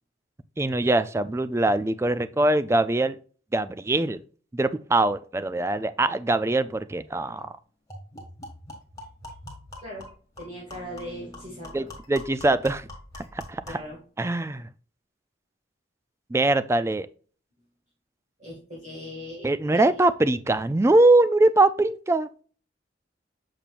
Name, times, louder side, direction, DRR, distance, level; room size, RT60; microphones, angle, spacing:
voice 1, 0.6-3.2 3.5-4.2 4.5-7.5 11.7-12.9 13.5-13.6 14.2-14.7 16.3-17.1 19.4-22.3, right 2 dB, 15° right, 0.3 m, -22 dB
sound 1, 7.0-7.1 7.4-7.5 7.9-13.9, left 1 dB, 20° left, 1.7 m, -44 dB
voice 2, 10.4-11.9 13.7-14.0 18.4-20.0, equal, 40° right, 2.0 m, -39 dB
6.9 x 5.8 x 2.5 m
head